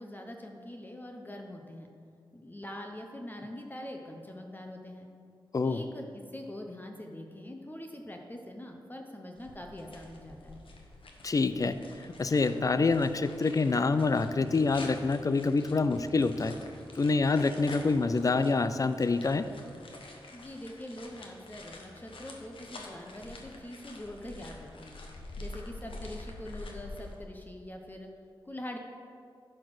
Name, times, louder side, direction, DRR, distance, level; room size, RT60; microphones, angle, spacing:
voice 1, 0.0-1.9 2.3-5.1 5.6-6.1 6.3-10.6 20.3-25.0 25.4-28.1 28.4-28.8, left 1 dB, 20° left, 2 dB, 0.9 m, -43 dB
sound 1, 9.3-27.1, left 2 dB, 70° left, 1.2 m, -47 dB
voice 2, 11.2-11.8 12.2-16.5 17.0-19.5, left 3 dB, 40° left, 12 dB, 0.5 m, -26 dB
10.5 x 4.4 x 6.0 m, 2.4 s
cardioid pair, 50°, 9 cm